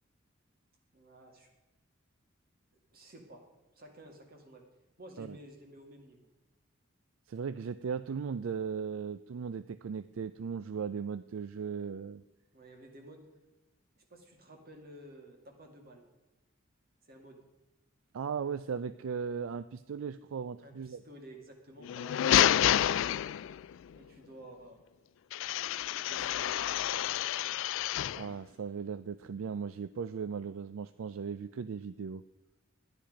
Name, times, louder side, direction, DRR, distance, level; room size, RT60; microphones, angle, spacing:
voice 1, 0.9-1.5 2.9-3.4 3.7-4.6 5.0-6.3 12.5-13.3 14.0-16.0 17.0-17.4 20.6-23.0 23.9-24.8 26.0-26.6, right 1 dB, 50° right, 3 dB, 2.3 m, -52 dB
voice 2, 7.3-12.2 18.1-21.0 28.1-32.2, right 6 dB, 70° right, 14 dB, 0.4 m, -37 dB
sound 1, 21.8-23.7 25.3-28.3, left 11 dB, 65° left, 0.3 m, -29 dB
13.0 x 10.0 x 5.0 m, 1.1 s
head